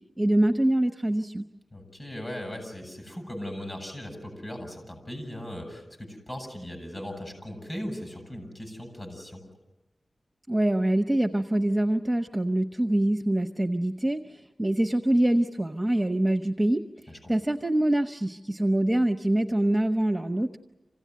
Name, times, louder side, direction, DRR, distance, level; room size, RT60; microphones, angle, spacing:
voice 1, 0.2-1.4 10.5-16.8 17.3-20.6, right 1 dB, 10° right, 4 dB, 1.0 m, -25 dB
voice 2, 1.7-9.4 17.1-17.3, left 1 dB, 30° left, 4 dB, 7.7 m, -38 dB
27.5 x 16.5 x 9.5 m, 1.0 s
wide cardioid pair, 105°, 0 cm